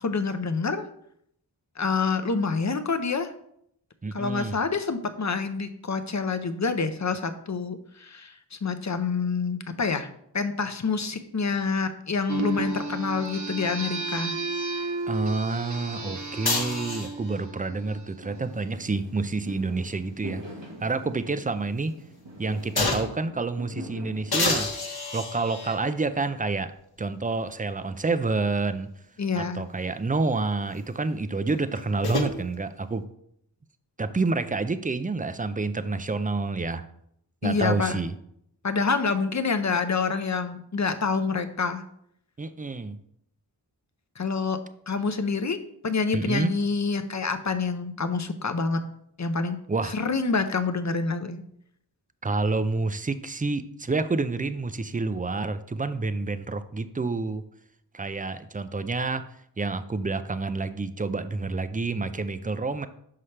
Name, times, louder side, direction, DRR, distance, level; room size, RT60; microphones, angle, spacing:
voice 1, 0.0-0.8 1.8-3.3 4.1-10.1 10.3-14.3 29.2-29.6 37.4-38.0 38.6-41.8 44.2-44.6 44.9-45.6 45.8-48.8 49.2-49.6 49.9-51.4, left 4 dB, 40° left, 9 dB, 0.6 m, -27 dB
voice 2, 4.0-4.6 15.1-20.4 20.8-22.0 22.4-24.7 25.1-26.7 27.0-28.9 29.3-33.0 34.0-36.8 37.4-38.2 42.4-43.0 46.1-46.5 49.7-50.0 52.2-57.4 57.9-59.2 59.6-62.9, right 3 dB, 20° right, 12 dB, 0.4 m, -28 dB
sound 1, 12.3-18.3, right 3 dB, 45° right, 0.8 m, -33 dB
sound 2, 16.4-17.4 19.2-20.7 21.1-21.2 22.8-23.3 24.3-25.9 26.8-26.9 31.5-32.3, left 3 dB, 60° left, 1.0 m, -30 dB
Fireworks, 18.2-24.4, equal, 90° right, 1.4 m, -43 dB
5.7 x 5.5 x 3.2 m, 0.72 s
wide cardioid pair, 45°, 43 cm